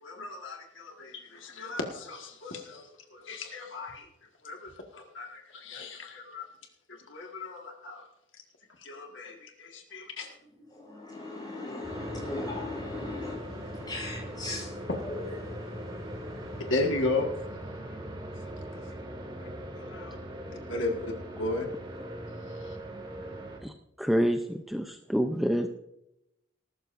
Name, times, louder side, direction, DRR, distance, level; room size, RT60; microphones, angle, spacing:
voice 1, 0.0-4.1 4.4-6.5 6.9-8.1 8.8-10.3 16.7-17.3 18.7-18.8 19.4-19.5 19.8-20.2 20.5-21.1 21.4-21.7 22.7-22.8, left 2 dB, 75° left, 2 dB, 1.7 m, -35 dB
voice 2, 10.4-16.7, left 2 dB, 20° left, -1 dB, 5.6 m, -39 dB
sound 1, 11.8-23.6, equal, 25° right, 2.0 m, -40 dB
voice 3, 23.6-25.7, equal, ahead, 5 dB, 0.5 m, -28 dB
19.5 x 13.0 x 2.6 m, 0.85 s
head